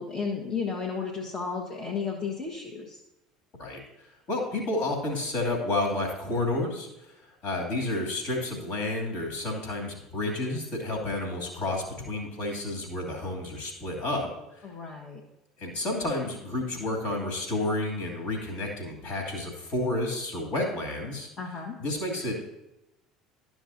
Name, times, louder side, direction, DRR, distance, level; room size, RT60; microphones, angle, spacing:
voice 1, 0.0-3.0 14.6-15.2 21.4-21.8, left 5 dB, 30° left, -1 dB, 1.2 m, -33 dB
voice 2, 3.6-14.7 15.6-21.3 21.8-22.4, left 2 dB, 50° left, 1 dB, 2.5 m, -31 dB
12.5 x 6.1 x 2.7 m, 0.91 s
figure-of-eight pair, 65°, 3 cm